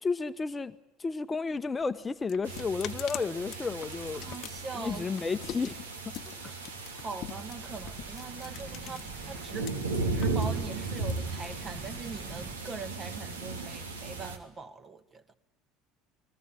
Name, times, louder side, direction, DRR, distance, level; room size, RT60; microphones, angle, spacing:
voice 1, 0.0-0.7 1.0-4.2 4.8-6.2, left 4 dB, 20° left, 1.1 m, -32 dB
sound 1, 1.5-9.7 10.0-12.0, left 13 dB, 45° left, 1.1 m, -44 dB
sound 2, 2.4-14.4, right 3 dB, 70° right, 2.7 m, -36 dB
voice 2, 4.1-5.1 6.2-6.7 7.0-9.7 10.1-15.3, right 4 dB, 30° right, 2.1 m, -42 dB
sound 3, 7.5-12.5, right 4 dB, 45° right, 6.6 m, -47 dB
30.0 x 21.0 x 8.4 m
figure-of-eight pair, 65°, 0 cm